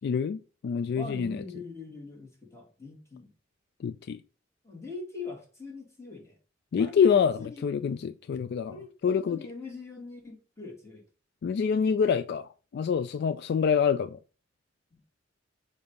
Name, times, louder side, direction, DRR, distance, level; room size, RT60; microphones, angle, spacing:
voice 1, 0.0-1.4 3.8-4.2 6.7-8.8 9.0-9.4 11.4-14.2, left 6 dB, 55° left, 0.3 m, -26 dB
voice 2, 0.9-3.3 4.6-6.3 6.8-7.7 8.7-11.0 14.9-15.0, left 3 dB, 15° left, 2.1 m, -42 dB
6.9 x 2.7 x 5.3 m
head